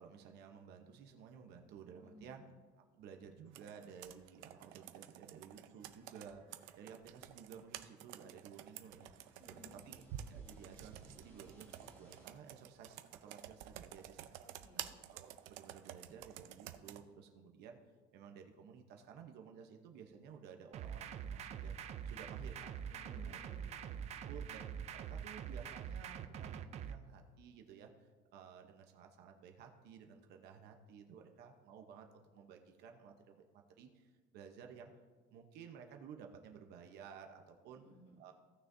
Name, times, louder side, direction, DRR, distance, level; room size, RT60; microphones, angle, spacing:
voice 1, 0.0-2.4 2.9-10.0 10.3-14.3 14.8-17.8 18.1-21.7 22.0-22.8 23.1-23.4 24.2-24.7 24.9-34.9 35.3-37.8 38.2-38.3, right 7 dB, 55° right, 4 dB, 0.9 m, -55 dB
voice 2, 2.0-2.5 9.4-9.8 14.4-15.0 22.9-24.1 37.7-38.2, left 1 dB, 30° left, -2 dB, 2.2 m, -60 dB
Computer keyboard, 3.5-17.0, right 12 dB, 75° right, 0.6 m, -51 dB
sound 1, 8.8-14.2, right 1 dB, 10° left, 1.3 m, -64 dB
sound 2, 20.7-26.9, right 8 dB, 35° right, 0.5 m, -44 dB
17.0 x 6.4 x 2.7 m, 1.4 s
cardioid pair, 165°, 20 cm